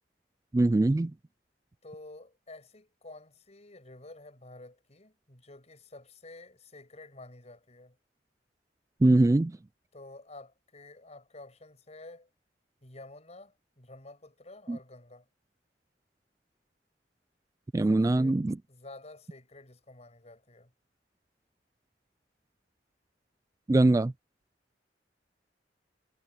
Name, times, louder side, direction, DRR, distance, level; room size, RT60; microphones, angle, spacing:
voice 1, 0.5-1.1 9.0-9.6 14.7-14.8 17.7-18.6 23.7-24.1, right 2 dB, 20° right, 0.3 m, -22 dB
voice 2, 1.8-8.0 9.9-12.3 12.8-15.3 17.9-18.4 18.7-20.7, left 2 dB, 40° left, 5.9 m, -50 dB
head